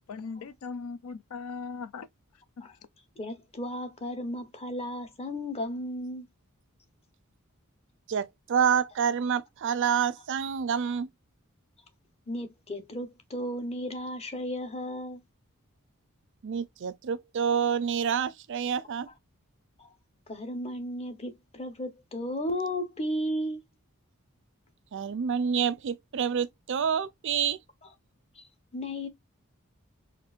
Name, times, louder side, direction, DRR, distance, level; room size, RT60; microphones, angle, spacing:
voice 1, 0.1-2.1 2.6-2.7, left 5 dB, 75° left, 0.4 m, -38 dB
voice 2, 3.2-6.3 12.3-15.2 19.8-19.9 20.3-23.6 28.3-29.1, equal, 30° left, 0.8 m, -34 dB
voice 3, 8.1-11.1 16.4-19.1 24.9-27.6, right 7 dB, 55° right, 0.4 m, -28 dB
4.5 x 2.5 x 2.4 m
head